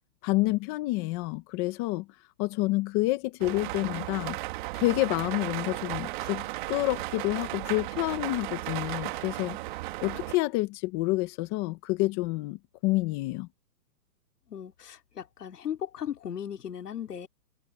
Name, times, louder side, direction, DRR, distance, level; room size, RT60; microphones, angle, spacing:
voice 1, 0.2-2.1 2.4-4.4 4.7-9.6 10.0-13.5, left 20 dB, 15° left, 0.9 m, -28 dB
sound 1, 3.4-10.4, right 18 dB, 30° right, 1.9 m, -35 dB
voice 2, 14.5-17.3, left 9 dB, 70° left, 3.6 m, -37 dB
hypercardioid pair, 160°, 48 cm